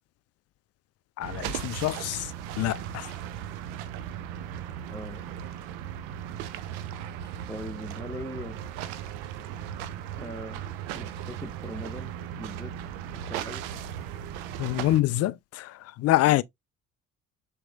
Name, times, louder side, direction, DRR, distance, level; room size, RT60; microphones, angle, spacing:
voice 1, 1.2-3.2 14.6-16.4, left 15 dB, 45° left, 0.4 m, -26 dB
sound 1, 1.2-15.0, right 10 dB, 65° right, 0.6 m, -37 dB
voice 2, 4.9-5.2 7.5-8.6 10.2-10.6 10.9-12.7 13.1-13.6, left 1 dB, 5° left, 1.1 m, -40 dB
5.9 x 2.9 x 2.4 m
figure-of-eight pair, 45°, 37 cm